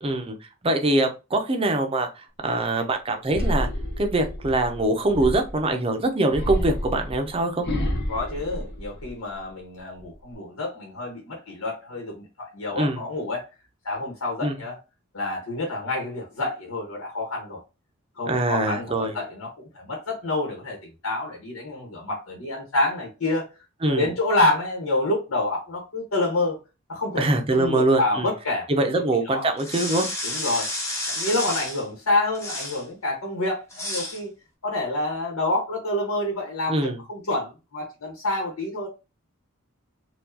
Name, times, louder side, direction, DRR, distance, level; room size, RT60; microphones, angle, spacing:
voice 1, 0.0-0.4 0.6-3.7 4.0-7.6 12.8-13.1 14.4-14.5 18.3-19.1 23.8-24.1 27.2-28.3 28.7-30.1 36.7-37.0, right 2 dB, 25° right, 5 dB, 0.6 m, -23 dB
sound 1, 3.3-5.7 6.3-9.4 9.8-10.3, equal, 50° left, 0.8 m, -29 dB
voice 2, 8.1-13.4 13.8-14.8 15.1-17.6 18.2-20.8 21.0-23.5 23.9-26.6 26.9-27.2 27.5-29.0 29.3-29.5 30.2-30.7 31.1-34.3 34.6-38.9, left 2 dB, 90° left, 0 dB, 1.2 m, -28 dB
sound 2, 29.6-31.8 32.3-32.8 33.7-34.2, left 1 dB, 15° left, 0.8 m, -30 dB
4.4 x 2.4 x 2.7 m, 0.28 s
head